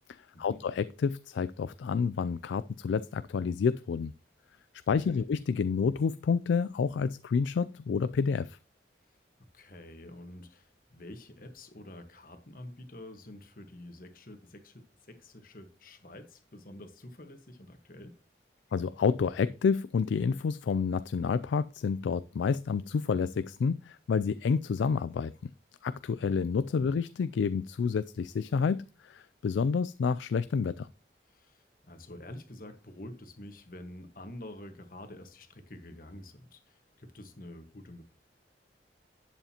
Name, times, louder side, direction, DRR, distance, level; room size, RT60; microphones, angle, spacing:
voice 1, 0.4-4.1 4.9-8.6 18.7-25.3 25.8-30.9, left 5 dB, 90° left, 0.3 m, -29 dB
voice 2, 9.5-18.2 31.2-38.0, left 1 dB, 50° left, 1.4 m, -48 dB
11.5 x 8.0 x 2.9 m
head